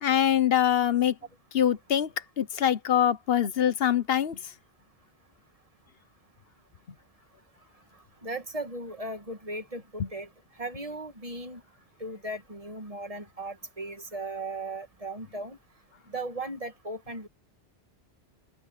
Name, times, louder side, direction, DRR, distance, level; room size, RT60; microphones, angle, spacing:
voice 1, 0.0-1.1 1.5-2.1 2.4-4.4 10.0-10.1, left 10 dB, 70° left, 1.1 m, -24 dB
voice 2, 8.2-10.3 10.6-11.6 12.0-15.6 16.1-17.3, right 2 dB, 35° right, 1.9 m, -37 dB
open air
omnidirectional pair, 1.1 m